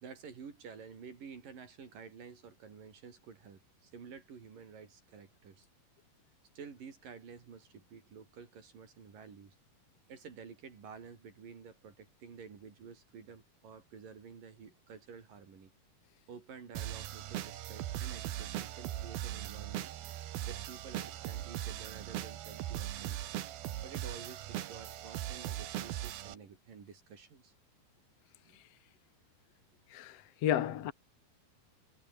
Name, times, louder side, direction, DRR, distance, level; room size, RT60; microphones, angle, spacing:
voice 1, 0.0-5.7 6.6-9.6 10.1-15.7 16.3-19.9 20.5-23.3 23.8-27.5 28.4-28.6 30.0-30.1, right 6 dB, 60° right, 5.3 m, -51 dB
sound 1, 16.8-26.4, right 12 dB, 75° right, 3.3 m, -39 dB
voice 2, 29.9-30.9, left 11 dB, 60° left, 1.8 m, -32 dB
omnidirectional pair, 4.5 m